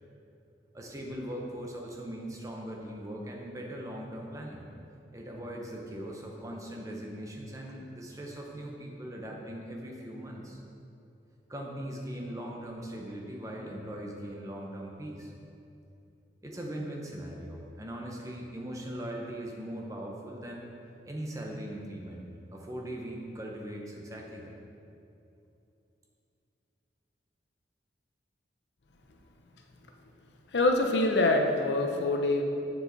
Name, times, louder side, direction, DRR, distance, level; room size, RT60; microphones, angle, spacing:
voice 1, 0.7-4.7 5.1-10.6 11.5-15.3 16.4-20.7 21.1-24.6, right 1 dB, 20° right, -1 dB, 0.8 m, -40 dB
voice 2, 30.5-32.4, left 2 dB, 75° left, 3 dB, 0.7 m, -25 dB
7.2 x 7.1 x 4.0 m, 2.7 s
head